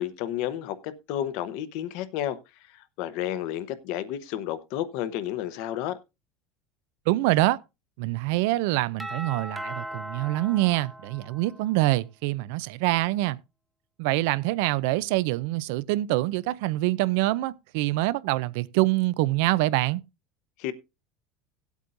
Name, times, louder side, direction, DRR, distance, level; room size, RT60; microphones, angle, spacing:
voice 1, 0.0-2.4 3.0-6.0 20.6-20.7, left 11 dB, 55° left, 0.8 m, -31 dB
voice 2, 7.1-7.6 8.0-13.4 14.0-20.0, right 18 dB, 65° right, 0.4 m, -25 dB
Doorbell, 9.0-11.8, right 1 dB, 5° right, 0.6 m, -38 dB
17.5 x 8.2 x 2.5 m
cardioid pair, 175°, 0 cm